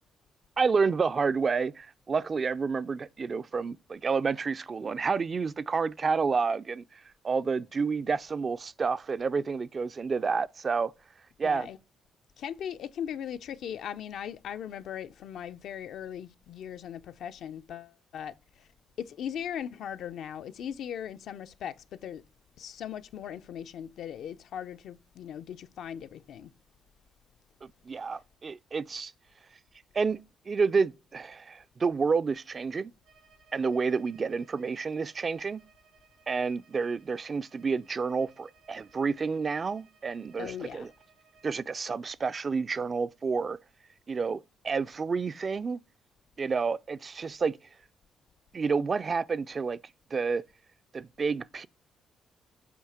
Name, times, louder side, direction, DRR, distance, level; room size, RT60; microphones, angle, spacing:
voice 1, 0.6-10.9 11.4-11.7 27.6-29.1 29.9-30.2 30.5-32.9 33.5-35.6 36.3-40.9 41.4-43.6 44.1-45.8 46.4-47.6 48.5-49.8 50.1-50.4 50.9-51.7, right 5 dB, 40° right, 0.3 m, -29 dB
voice 2, 11.4-11.8 12.4-18.3 19.0-22.2 22.6-26.5 40.4-40.9, left 9 dB, 70° left, 0.5 m, -39 dB
Bowed string instrument, 33.0-41.6, right 5 dB, 85° right, 1.8 m, -63 dB
8.0 x 2.8 x 5.7 m
cardioid pair, 90°, 0 cm